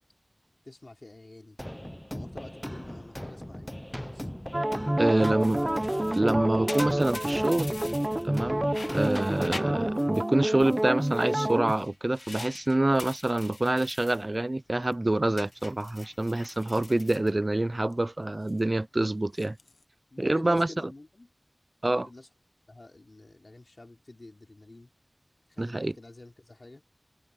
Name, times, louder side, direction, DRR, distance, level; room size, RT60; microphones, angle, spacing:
voice 1, 0.6-1.6 2.1-4.3 5.1-5.6 8.8-8.9 20.1-21.3 21.9-22.3 22.7-24.9 25.5-26.8, left 2 dB, 60° left, 3.5 m, -48 dB
sound 1, 1.6-9.9, equal, 10° left, 0.6 m, -40 dB
sound 2, 4.5-11.7, right 1 dB, 25° right, 1.0 m, -28 dB
voice 2, 5.0-5.6 6.1-7.7 8.2-19.6 20.2-20.7 21.8-22.1 25.6-25.9, right 2 dB, 45° right, 0.5 m, -26 dB
sound 3, 5.4-8.4 8.7-10.3 10.6-14.2 14.6-14.9 15.3-17.9 18.2-18.6 19.2-19.8, left 3 dB, 85° left, 1.0 m, -45 dB
wide cardioid pair, 55°, 0 cm